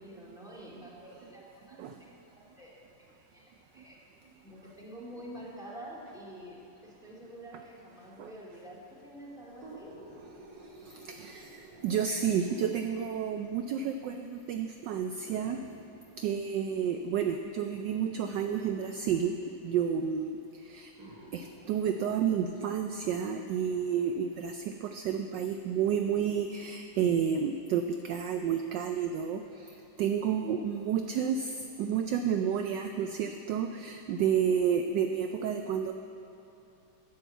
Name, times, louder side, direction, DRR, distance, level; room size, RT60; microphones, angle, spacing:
voice 1, 0.0-1.8 2.4-2.7 3.0-4.0 4.4-9.9, right 1 dB, ahead, -5 dB, 1.9 m, -47 dB
sound 1, 9.5-13.2 14.1-14.2 15.3-19.2 20.2-20.3 20.9-23.6 24.1-24.2, right 2 dB, 45° right, 2.9 m, -53 dB
voice 2, 10.5-15.6 16.2-19.4 19.6-20.9 21.3-35.9, right 8 dB, 80° right, 6 dB, 1.0 m, -31 dB
10.5 x 8.2 x 8.0 m, 2.8 s
omnidirectional pair, 2.4 m